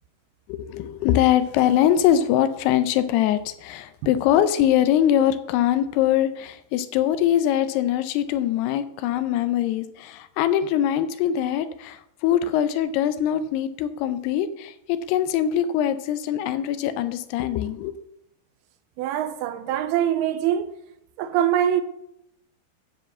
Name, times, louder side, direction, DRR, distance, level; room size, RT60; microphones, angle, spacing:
voice 1, 0.5-18.0, left 11 dB, 85° left, 2.7 m, -22 dB
voice 2, 19.0-20.6 21.2-21.8, right 10 dB, 80° right, 2.5 m, -23 dB
9.7 x 4.9 x 7.3 m
omnidirectional pair, 4.7 m